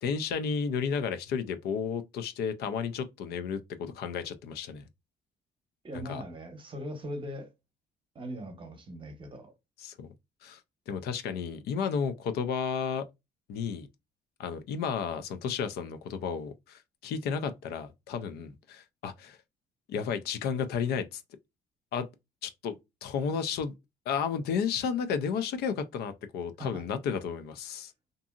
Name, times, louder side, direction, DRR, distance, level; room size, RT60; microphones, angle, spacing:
voice 1, 0.0-4.8 5.9-6.2 9.8-10.1 10.4-10.6 10.9-13.0 13.5-13.9 14.4-19.4 19.9-21.2 21.9-22.1 22.4-22.8 23.0-23.7 24.1-27.9, left 6 dB, 70° left, 0.5 m, -32 dB
voice 2, 5.8-7.5 8.1-9.5 26.6-26.8, equal, 30° right, 0.8 m, -40 dB
2.7 x 2.6 x 2.4 m
cardioid pair, 110°, 17 cm